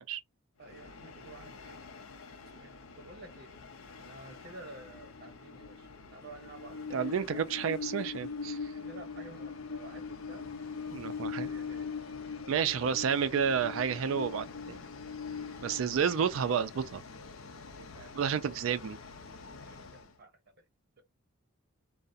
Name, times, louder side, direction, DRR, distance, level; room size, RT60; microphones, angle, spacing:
Train, 0.6-20.1, left 5 dB, 70° left, 0.5 m, -43 dB
voice 1, 0.6-1.8 2.5-3.5 4.0-7.5 8.6-10.5 11.0-11.9 12.6-12.8 15.3-15.8 17.5-18.9 19.7-20.6 21.0-21.1, right 2 dB, 50° right, 0.9 m, -52 dB
voice 2, 6.9-8.6 10.9-11.5 12.5-14.8 15.6-17.0 18.2-19.0, right 7 dB, 65° right, 0.3 m, -30 dB
2.4 x 2.0 x 2.5 m
head